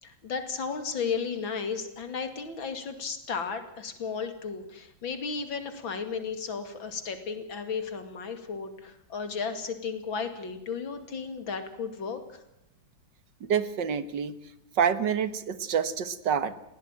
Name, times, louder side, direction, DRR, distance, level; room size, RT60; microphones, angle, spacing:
voice 1, 0.0-12.4, left 5 dB, 85° left, 8 dB, 3.2 m, -34 dB
voice 2, 13.4-14.3 14.8-16.5, right 7 dB, 65° right, 13 dB, 2.0 m, -27 dB
20.5 x 17.0 x 9.0 m, 0.85 s
omnidirectional pair, 2.1 m